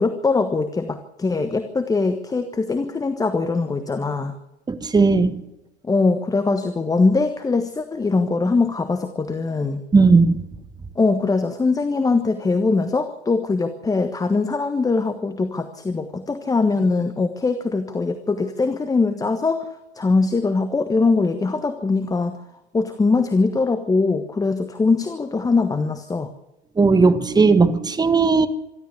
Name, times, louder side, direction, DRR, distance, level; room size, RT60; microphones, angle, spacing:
voice 1, 0.0-4.3 5.8-9.8 11.0-19.7 19.9-22.3 22.7-26.3, left 3 dB, 10° left, 1.3 m, -22 dB
voice 2, 4.7-5.4 9.9-10.4 26.8-28.5, right 4 dB, 10° right, 1.5 m, -16 dB
25.5 x 12.5 x 8.3 m
figure-of-eight pair, 95°, 34 cm